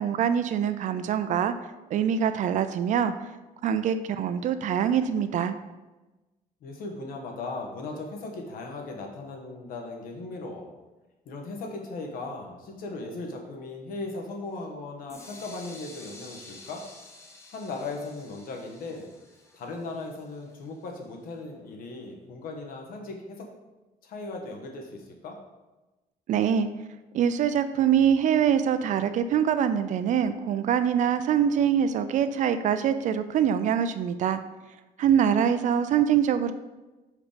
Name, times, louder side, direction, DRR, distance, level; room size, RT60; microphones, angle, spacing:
voice 1, 0.0-1.5 1.9-3.1 3.6-5.6 26.3-26.7 27.1-34.4 35.0-36.5, right 8 dB, 50° right, 11 dB, 0.4 m, -24 dB
voice 2, 6.6-10.7 11.2-16.8 17.5-19.1 19.5-23.5 24.0-25.4, left 3 dB, 65° left, 2 dB, 1.3 m, -37 dB
sound 1, 15.1-20.9, left 2 dB, 15° left, 0.9 m, -50 dB
5.4 x 5.0 x 5.0 m, 1.1 s
cardioid pair, 155°, 16 cm